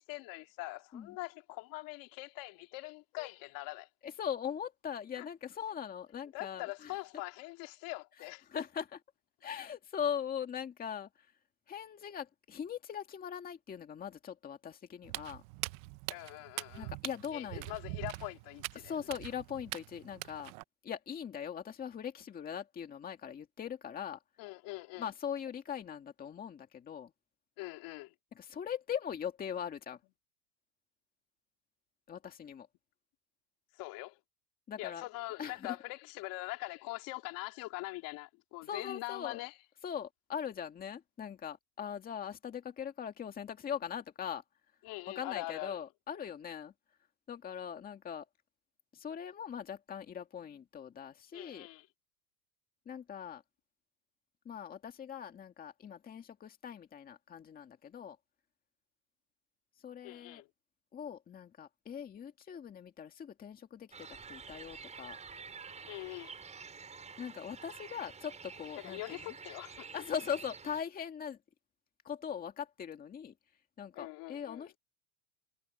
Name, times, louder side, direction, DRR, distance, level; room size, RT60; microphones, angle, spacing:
voice 1, 0.0-3.9 5.2-5.3 6.3-8.5 16.1-16.9 17.3-19.0 24.4-25.1 27.6-28.1 33.7-34.2 34.8-39.6 44.8-45.8 51.3-51.9 60.0-60.5 65.9-66.3 68.8-70.0 73.9-74.7, left 21 dB, 45° left, 2.5 m, -43 dB
voice 2, 4.0-6.9 8.5-8.9 9.4-11.3 11.7-15.4 16.7-17.6 18.8-20.5 20.8-24.2 25.0-27.1 28.3-30.0 32.1-32.7 34.7-35.0 35.4-35.8 38.7-39.4 39.8-44.4 45.2-46.7 47.3-48.3 48.9-51.7 52.9-53.4 54.5-58.2 59.8-60.4 60.9-65.2 67.2-69.3 69.9-71.4 72.0-73.3 73.8-74.8, left 8 dB, 20° left, 2.0 m, -41 dB
Walk footsteps, 15.0-20.6, right 22 dB, 45° right, 0.9 m, -43 dB
sound 1, 63.9-70.8, right 5 dB, 15° right, 5.6 m, -49 dB
supercardioid pair, 145°, 45 cm